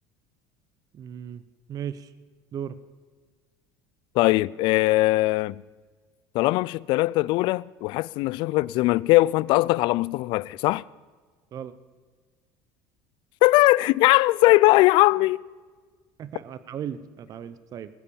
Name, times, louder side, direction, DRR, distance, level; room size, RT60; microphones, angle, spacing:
voice 1, 0.9-1.4 1.7-2.1 2.5-2.7 11.5-11.7 16.2-17.9, right 9 dB, 45° right, 0.8 m, -36 dB
voice 2, 4.1-5.6 6.3-10.8 13.4-15.4, left 19 dB, 65° left, 0.4 m, -20 dB
19.5 x 8.2 x 7.1 m
supercardioid pair, 100°, 9 cm